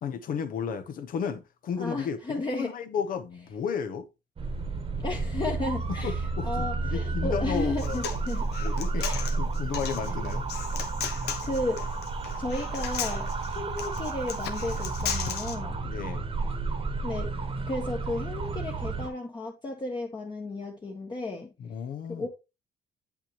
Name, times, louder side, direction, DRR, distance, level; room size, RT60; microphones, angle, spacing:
voice 1, 0.0-2.2 2.5-4.1 5.9-8.0 8.6-10.5 15.8-16.2 21.6-22.3, left 7 dB, 55° left, 1.0 m, -33 dB
voice 2, 1.8-2.7 5.0-8.5 9.0-9.3 11.4-11.9 12.4-15.7 17.0-17.3 17.7-21.5 22.1-22.3, left 2 dB, 25° left, 1.3 m, -34 dB
sound 1, 4.4-19.1, right 3 dB, 35° right, 1.3 m, -31 dB
Human voice, 7.6-15.5, left 8 dB, 75° left, 1.2 m, -36 dB
8.7 x 5.6 x 3.0 m
cardioid pair, 110°, 17 cm